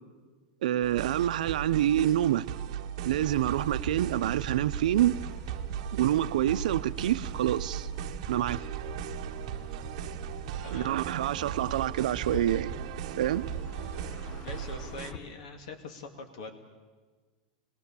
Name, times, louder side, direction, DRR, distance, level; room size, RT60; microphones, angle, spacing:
voice 1, 0.6-2.5 3.0-5.2 5.9-7.9 8.3-8.6 10.7-12.7 13.2-13.4, right 12 dB, 75° right, 0.7 m, -27 dB
sound 1, 0.8-15.1, right 10 dB, 45° right, 1.1 m, -38 dB
sound 2, 3.0-14.6, right 7 dB, 25° right, 2.1 m, -43 dB
sound 3, 3.1-15.2, left 2 dB, 25° left, 1.0 m, -46 dB
voice 2, 14.4-16.5, left 4 dB, 55° left, 2.3 m, -43 dB
25.0 x 20.5 x 7.1 m
supercardioid pair, 175°, 4 cm